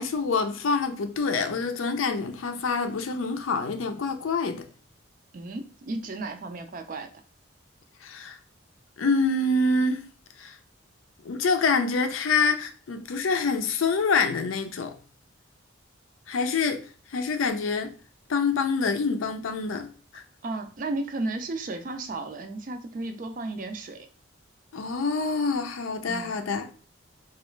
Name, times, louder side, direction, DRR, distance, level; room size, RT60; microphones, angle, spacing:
voice 1, 0.0-4.7 8.0-8.4 9.0-10.0 10.4-10.5 11.2-14.9 16.3-17.9 18.3-20.2 24.7-26.7, left 4 dB, 80° left, 0.4 m, -26 dB
voice 2, 5.3-7.1 20.4-24.1 26.0-26.4, right 2 dB, 40° right, 0.4 m, -34 dB
3.1 x 2.4 x 3.1 m
head